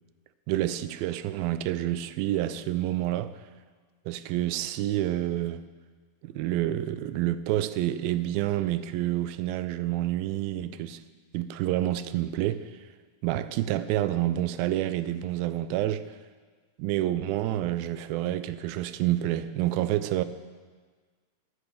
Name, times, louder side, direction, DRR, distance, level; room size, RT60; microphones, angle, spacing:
voice 1, 0.5-3.3 4.1-5.6 6.2-11.0 11.3-12.6 13.2-16.1 16.8-20.2, right 13 dB, 90° right, 2.4 m, -28 dB
15.0 x 9.7 x 5.1 m
omnidirectional pair, 4.1 m